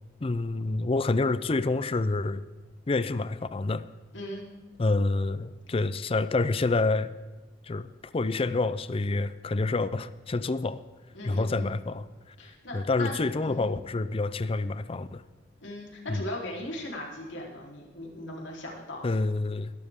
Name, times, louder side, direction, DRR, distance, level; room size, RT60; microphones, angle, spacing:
voice 1, 0.2-2.4 2.9-3.9 4.8-7.1 7.6-7.9 8.1-10.8 11.2-12.1 12.7-15.2 16.1-16.2 19.0-19.7, left 3 dB, 30° left, 14 dB, 0.5 m, -27 dB
voice 2, 4.1-4.5 11.1-11.8 12.4-13.2 13.4-13.7 15.6-19.1, left 1 dB, 75° left, -2 dB, 3.7 m, -38 dB
20.5 x 12.0 x 3.7 m, 1.3 s
head